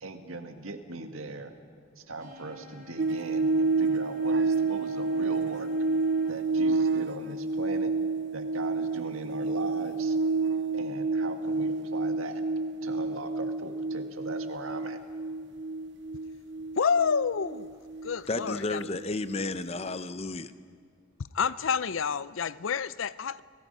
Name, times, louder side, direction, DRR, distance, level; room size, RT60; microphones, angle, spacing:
voice 1, 0.0-1.5 2.0-5.7 6.3-7.9 8.3-10.2 10.7-12.4 12.8-15.0, right 3 dB, 80° right, 6 dB, 1.8 m, -40 dB
sound 1, 2.2-6.3, left 4 dB, 40° right, 3.7 m, -52 dB
sound 2, 3.0-19.5 19.8-20.0, right 3 dB, 55° right, 0.7 m, -29 dB
voice 2, 16.8-17.7 18.0-18.8 21.3-23.4, left 6 dB, 70° left, 18 dB, 0.5 m, -28 dB
voice 3, 18.3-20.5, left 2 dB, 30° left, 13 dB, 0.7 m, -32 dB
30.0 x 19.0 x 5.5 m, 2.1 s
head